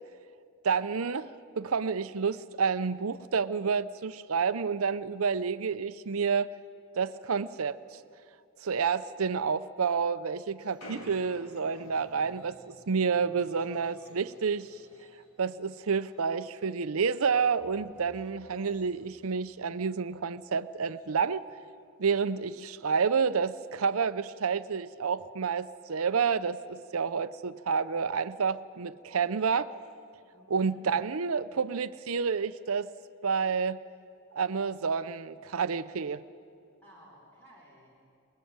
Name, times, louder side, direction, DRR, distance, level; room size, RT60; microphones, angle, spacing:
voice 1, 0.6-1.3 1.6-6.5 6.9-7.8 8.6-14.8 15.4-21.4 22.0-29.7 30.5-32.9 33.2-33.8 34.3-36.2, right 5 dB, 75° right, 14 dB, 0.6 m, -29 dB
sound 1, 10.6-15.4 15.7-16.7 17.0-17.2 17.8-19.7 20.1-20.2 20.4-20.5 20.8-21.2 22.0-22.2 23.0-23.4, left 1 dB, 85° left, 3.7 m, -54 dB
sound 2, 11.8-15.8 17.5-22.3 22.6-22.7, equal, 25° left, 7.6 m, -62 dB
voice 2, 30.3-30.8 36.8-38.1, right 1 dB, 10° left, -4 dB, 4.1 m, -56 dB
24.5 x 21.5 x 8.8 m, 2.4 s
head